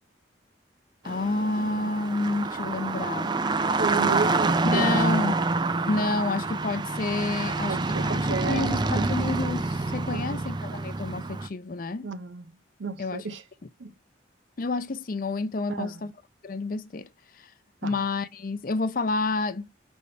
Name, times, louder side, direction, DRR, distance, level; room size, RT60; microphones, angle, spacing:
voice 1, 1.0-3.4 4.6-5.4 5.9-7.8 8.0-12.1 13.0-13.3 14.6-16.1 16.4-17.1 17.3-17.5 17.8-19.7, left 3 dB, 50° left, 0.5 m, -29 dB
sound 1, 1.1-11.5, right 3 dB, 25° right, 0.4 m, -27 dB
voice 2, 3.8-5.3 7.7-9.1 10.1-10.4 12.0-12.5 12.8-13.4 13.8-13.9 15.7-16.1 17.8-18.0, right 4 dB, 90° right, 0.7 m, -33 dB
5.3 x 3.4 x 2.7 m
head